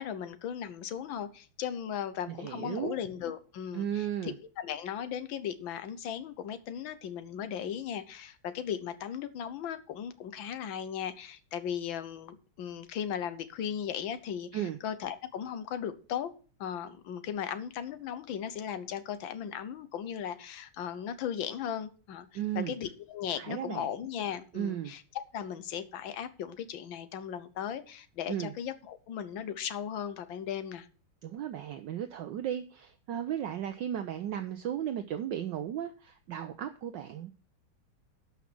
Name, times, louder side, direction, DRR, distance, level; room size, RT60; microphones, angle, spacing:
voice 1, 0.0-16.3 16.6-25.0 25.3-30.9, left 9 dB, 70° left, 12 dB, 1.6 m, -37 dB
voice 2, 2.3-3.0 3.7-4.4 14.5-14.8 22.3-22.8 23.4-23.9 24.5-24.9 28.3-28.5 31.2-37.3, right 10 dB, 70° right, 9 dB, 1.2 m, -35 dB
11.5 x 5.8 x 5.9 m, 0.39 s
omnidirectional pair, 2.4 m